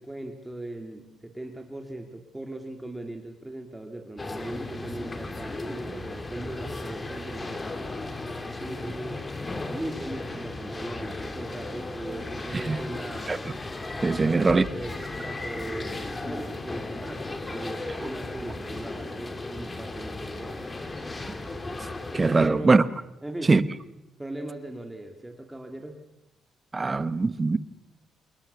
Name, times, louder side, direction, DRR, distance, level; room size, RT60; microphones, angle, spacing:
voice 1, 0.0-7.6 8.6-9.4 9.7-13.4 14.2-20.6 22.4-22.8 23.2-23.5 24.2-26.0, right 1 dB, 10° right, 2.9 m, -39 dB
sound 1, 4.2-22.5, left 2 dB, 25° left, 2.6 m, -35 dB
voice 2, 14.0-14.6 22.1-22.8 23.5-23.6 26.7-27.6, right 3 dB, 25° right, 1.1 m, -21 dB
27.0 x 21.0 x 7.1 m
cardioid pair, 90°, 0 cm